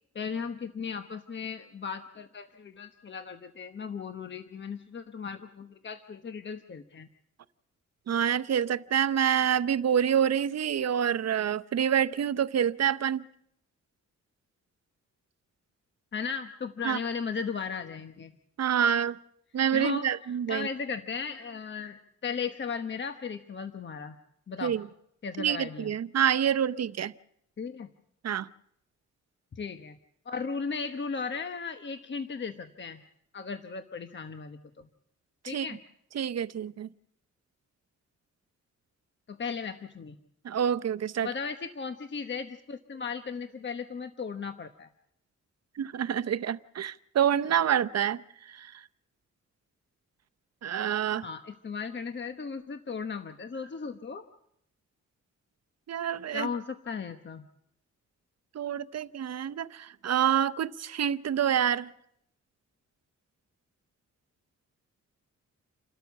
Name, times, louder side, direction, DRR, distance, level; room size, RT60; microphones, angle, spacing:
voice 1, 0.1-7.1 16.1-18.3 19.7-20.1 20.5-24.2 24.5-24.7 25.2-25.9 27.6-27.9 29.6-30.0 30.2-33.0 33.3-34.9 35.5-35.8 39.3-40.1 41.2-44.9 51.2-54.3 56.3-57.5, left 5 dB, 40° left, 1.1 m, -36 dB
voice 2, 8.1-13.2 16.8-17.0 18.6-19.2 19.5-20.7 24.6-24.9 25.4-27.1 28.2-28.5 35.4-35.7 36.1-36.9 40.4-41.3 45.8-48.2 48.5-48.8 50.6-51.3 55.9-56.5 58.5-61.9, right 9 dB, 60° right, 0.7 m, -27 dB
29.0 x 13.0 x 7.2 m
wide cardioid pair, 130°, 29 cm